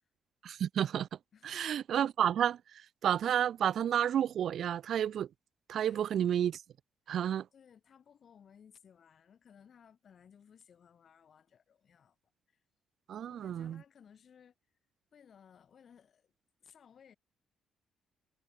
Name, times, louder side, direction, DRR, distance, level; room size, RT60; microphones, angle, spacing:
voice 1, 0.4-1.1 1.4-2.6 3.0-5.3 5.7-6.6 7.1-7.5 13.1-13.8, right 9 dB, 65° right, 0.4 m, -30 dB
voice 2, 1.3-1.8 5.9-6.1 7.5-12.2 12.5-12.6 13.1-14.5 15.1-16.3 16.6-17.2, left 7 dB, 55° left, 7.5 m, -60 dB
cardioid pair, 90°, 0 cm